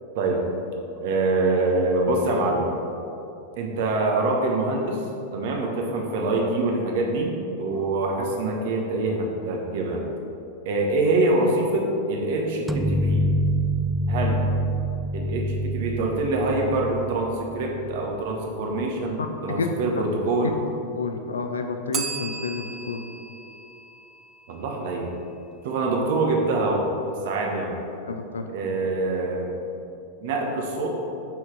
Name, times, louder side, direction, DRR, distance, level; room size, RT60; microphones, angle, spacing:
voice 1, 0.1-0.4 1.0-2.7 3.6-5.0 5.3-10.0 10.6-13.3 14.1-14.4 15.1-20.6 24.5-25.1 25.6-26.9 27.2-27.8 28.5-29.6 30.2-30.9, right 2 dB, 50° right, 1 dB, 1.2 m, -25 dB
sound 1, 12.7-18.2, right 1 dB, 10° right, 0.3 m, -26 dB
voice 2, 21.0-23.0 28.1-28.5, left 4 dB, 70° left, 6 dB, 0.6 m, -30 dB
Bell, 21.9-24.7, right 5 dB, 30° right, 0.7 m, -35 dB
6.1 x 5.9 x 4.8 m, 2.8 s
figure-of-eight pair, 90°, 0 cm